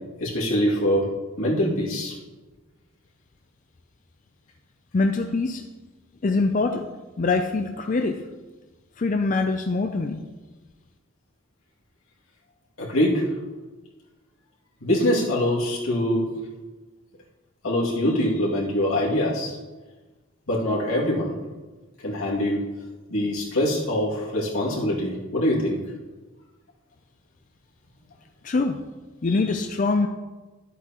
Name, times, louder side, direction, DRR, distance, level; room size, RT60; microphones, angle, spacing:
voice 1, 0.2-1.1 1.4-2.1 12.8-13.3 14.8-16.2 17.6-19.5 20.5-21.3 22.0-22.6 23.1-25.8, left 1 dB, 85° left, -5 dB, 2.3 m, -23 dB
voice 2, 4.9-5.6 6.2-6.9 7.2-8.2 9.0-10.2 28.4-28.8 29.2-30.1, left 3 dB, 40° left, 5 dB, 0.4 m, -23 dB
12.0 x 8.1 x 3.0 m, 1.2 s
head